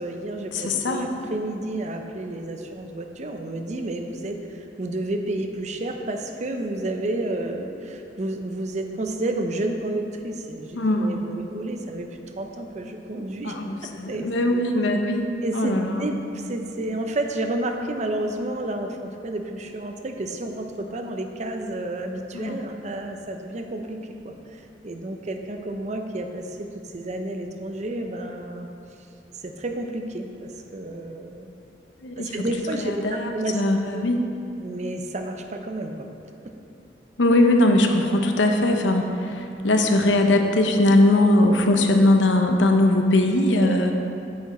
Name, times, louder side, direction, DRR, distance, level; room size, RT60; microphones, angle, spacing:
voice 1, 0.0-12.1 12.4-13.5 14.1-14.6 15.4-24.0 24.2-26.7 26.9-28.7 29.4-31.5 32.2-33.6 33.9-34.0 34.6-36.1 43.6-43.8, right 1 dB, 40° right, 4 dB, 0.6 m, -31 dB
voice 2, 0.5-1.1 10.7-11.2 13.4-15.3 15.5-16.1 22.3-22.6 32.0-32.3 32.8-34.2 37.2-43.9, left 1 dB, 90° left, 4 dB, 0.7 m, -20 dB
8.6 x 6.0 x 4.2 m, 2.7 s
head